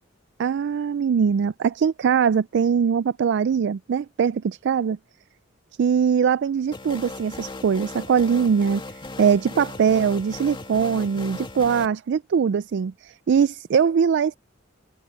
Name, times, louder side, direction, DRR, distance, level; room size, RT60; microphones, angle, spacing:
voice 1, 0.4-5.0 5.8-8.8 9.2-14.4, right 7 dB, 60° right, 0.3 m, -21 dB
sound 1, 6.7-11.9, left 2 dB, 25° left, 2.1 m, -37 dB
open air
head